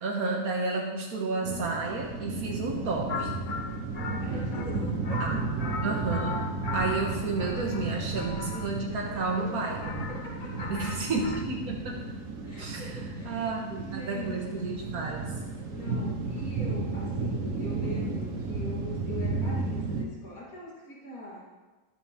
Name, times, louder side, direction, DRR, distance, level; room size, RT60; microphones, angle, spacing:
voice 1, 0.0-3.3 5.2-5.4 5.8-6.4 6.7-9.8 10.7-12.1 12.6-15.3, right 3 dB, 80° right, -1 dB, 1.9 m, -31 dB
sound 1, 1.4-20.1, right 3 dB, 60° right, 1.6 m, -33 dB
sound 2, 3.1-11.4, left 5 dB, 45° left, 0.7 m, -38 dB
voice 2, 4.2-5.5 9.4-9.6 9.8-10.7 12.5-14.6 15.7-21.5, left 2 dB, 70° left, -5 dB, 2.8 m, -42 dB
14.0 x 12.0 x 3.7 m, 1.2 s
omnidirectional pair, 1.5 m